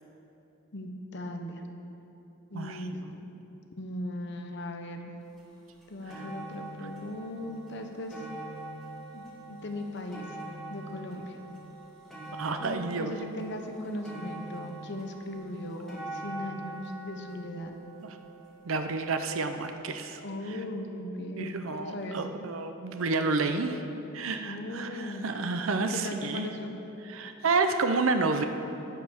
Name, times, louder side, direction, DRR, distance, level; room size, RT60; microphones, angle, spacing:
voice 1, 0.7-1.6 2.5-3.2 3.8-5.1 5.9-8.2 9.1-10.2 10.7-11.3 12.6-17.8 20.2-22.2 24.4-25.4 25.8-26.7, left 1 dB, 60° left, 5 dB, 1.0 m, -38 dB
voice 2, 2.5-3.2 6.1-6.2 12.3-13.1 18.0-18.2 18.6-20.2 20.5-20.6 21.4-23.8 24.1-26.5 27.0-28.4, right 3 dB, 90° right, 7 dB, 0.7 m, -30 dB
sound 1, 5.4-5.5 5.8-19.0 19.8-19.9, right 2 dB, ahead, 2.1 m, -44 dB
16.5 x 5.6 x 6.4 m, 3.0 s
head